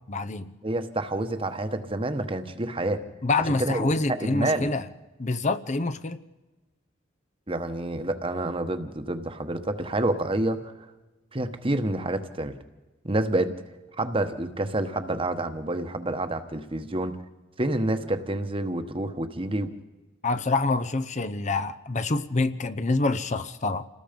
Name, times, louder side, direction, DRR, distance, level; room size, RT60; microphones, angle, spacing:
voice 1, 0.1-0.5 3.2-4.9 5.2-6.2 20.2-23.9, left 3 dB, 40° left, 10 dB, 0.7 m, -26 dB
voice 2, 0.6-3.0 3.6-4.7 7.5-10.7 11.3-12.5 13.0-13.6 14.0-17.2 17.6-19.7, right 1 dB, 30° right, 9 dB, 1.2 m, -28 dB
28.0 x 19.0 x 5.3 m, 1.1 s
head